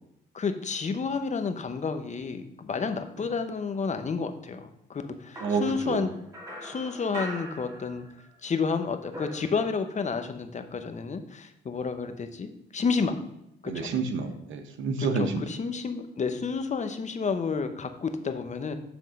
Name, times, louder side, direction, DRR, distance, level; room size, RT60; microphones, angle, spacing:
voice 1, 0.3-6.1 6.6-8.1 8.4-13.2 13.6-13.9 15.5-18.7, left 5 dB, 35° left, 8 dB, 0.9 m, -30 dB
sound 1, 5.3-8.4 8.6-10.1, equal, 15° right, 1.8 m, -42 dB
voice 2, 5.4-6.0 13.6-15.6, right 4 dB, 80° right, 7 dB, 1.0 m, -29 dB
8.0 x 3.6 x 6.2 m, 0.81 s
cardioid pair, 90°, 20 cm